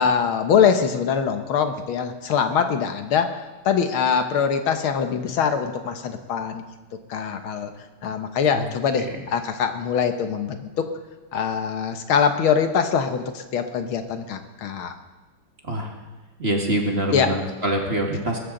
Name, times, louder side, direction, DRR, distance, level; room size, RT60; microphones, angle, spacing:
voice 1, 0.0-6.6 7.1-7.7 8.0-10.9 11.3-14.9 17.1-17.3, left 7 dB, 70° left, 7 dB, 1.8 m, -23 dB
voice 2, 16.4-18.4, right 1 dB, 30° right, 0 dB, 1.8 m, -24 dB
21.0 x 14.0 x 3.9 m, 1.2 s
omnidirectional pair, 2.4 m